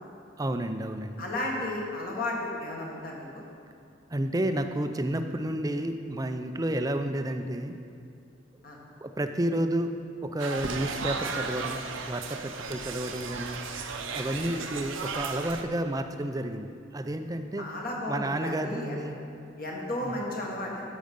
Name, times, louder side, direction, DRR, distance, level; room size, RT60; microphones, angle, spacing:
voice 1, 0.4-1.2 4.1-7.7 9.0-10.0 10.2-11.8 12.1-13.6 14.1-17.7 18.1-19.2 20.0-20.2, right 1 dB, 20° right, 8 dB, 0.4 m, -31 dB
voice 2, 1.2-3.3 8.6-8.8 14.4-14.5 17.6-19.0 19.6-20.8, left 1 dB, 50° left, -2 dB, 1.7 m, -33 dB
sound 1, 10.4-15.6, right 4 dB, 75° right, 0.8 m, -35 dB
11.5 x 6.3 x 5.3 m, 2.5 s
head